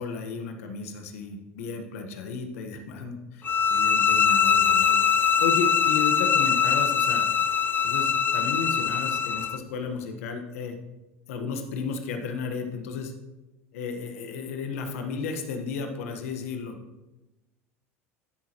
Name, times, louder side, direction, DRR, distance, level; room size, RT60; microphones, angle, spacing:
voice 1, 0.0-7.3 7.8-10.8 11.3-13.1 13.7-16.7, left 5 dB, 80° left, 5 dB, 1.3 m, -33 dB
sound 1, 3.4-9.6, left 7 dB, 25° left, 0.5 m, -22 dB
13.0 x 6.4 x 3.0 m, 1.0 s
hypercardioid pair, 90°, 8 cm